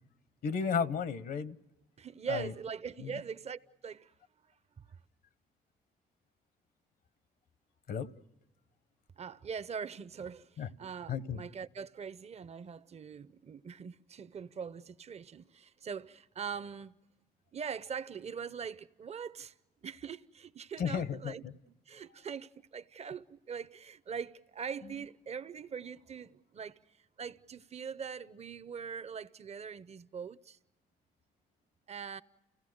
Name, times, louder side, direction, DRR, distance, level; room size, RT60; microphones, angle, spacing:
voice 1, 0.4-1.6 2.3-2.5 3.0-3.1 7.9-8.1 10.6-10.7 11.1-11.4 20.8-21.5, left 6 dB, 70° left, 1.0 m, -33 dB
voice 2, 2.0-4.1 4.9-5.0 9.2-17.0 17.5-19.5 19.8-21.4 21.9-26.8 27.2-30.6 31.9-32.2, right 6 dB, 40° right, 0.7 m, -42 dB
29.5 x 16.5 x 7.8 m
cardioid pair, 75°, 16 cm